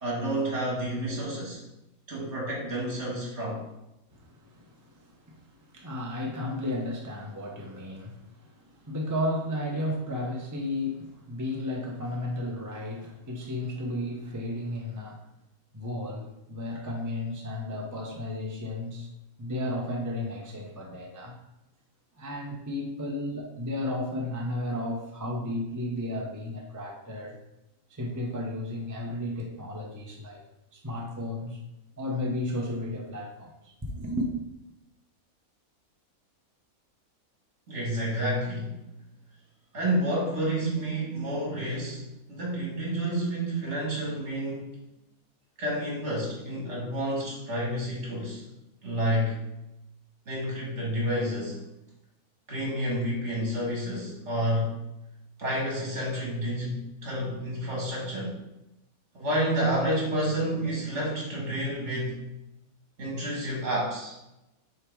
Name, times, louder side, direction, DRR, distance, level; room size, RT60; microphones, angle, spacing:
voice 1, 0.0-1.6 2.1-3.6 37.7-38.8 39.7-44.6 45.6-48.4 48.8-49.4 50.3-51.6 52.5-54.8 55.4-58.4 59.1-62.2 63.0-64.1, right 1 dB, 50° right, -3 dB, 2.2 m, -29 dB
voice 2, 4.1-5.4 5.7-15.2 15.7-19.1 19.4-21.4 22.2-27.4 27.9-30.4 30.7-31.6 32.0-34.3, left 1 dB, 15° right, -1 dB, 0.7 m, -33 dB
6.4 x 3.6 x 4.8 m, 0.91 s
omnidirectional pair, 1.5 m